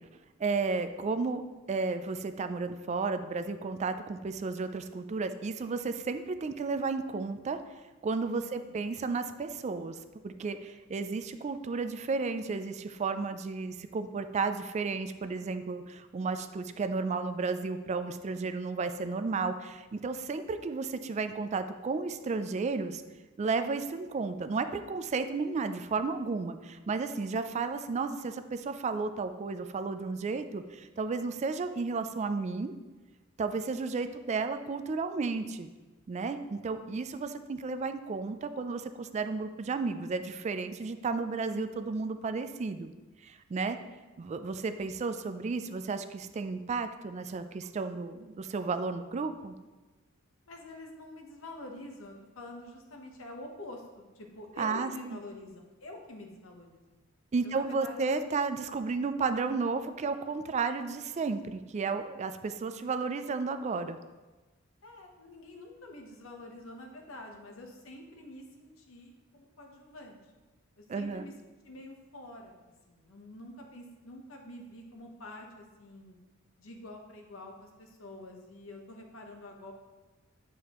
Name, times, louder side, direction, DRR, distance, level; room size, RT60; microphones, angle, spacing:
voice 1, 0.4-1.4 1.7-7.6 8.0-10.0 10.2-23.0 23.4-32.7 33.4-35.7 36.1-42.9 43.2-43.8 44.2-49.5 54.6-55.2 57.3-64.0 70.9-71.3, right 4 dB, 35° right, 10 dB, 0.3 m, -33 dB
voice 2, 8.4-8.8 50.5-56.8 57.4-58.1 64.8-70.2 70.8-71.3 71.6-72.6 72.9-76.2 76.6-79.7, left 1 dB, 85° left, 2 dB, 1.0 m, -47 dB
8.3 x 4.7 x 3.0 m, 1.2 s
head